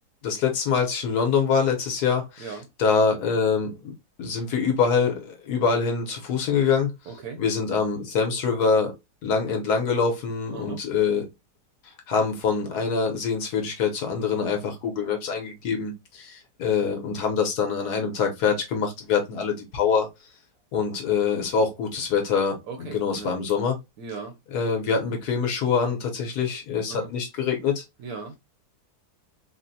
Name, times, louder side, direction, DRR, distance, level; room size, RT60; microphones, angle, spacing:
voice 1, 0.2-3.8 4.2-6.9 7.4-8.9 9.2-11.3 12.1-20.1 20.7-23.8 24.5-27.8, left 5 dB, 65° left, 1.3 m, -25 dB
voice 2, 7.1-7.4 10.5-10.8 22.7-23.3 24.0-24.4 26.9-27.1 28.0-28.4, right 5 dB, 70° right, 1.0 m, -37 dB
3.7 x 2.1 x 2.6 m
omnidirectional pair, 2.0 m